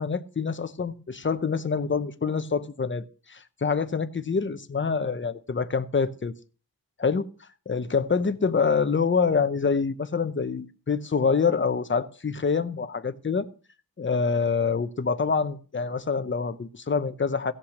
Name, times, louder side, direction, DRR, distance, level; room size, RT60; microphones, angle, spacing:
voice 1, 0.0-6.3 7.0-7.3 7.7-13.5 14.0-17.5, left 5 dB, 30° left, 0.8 m, -26 dB
16.5 x 5.8 x 6.5 m
wide cardioid pair, 110°, 37 cm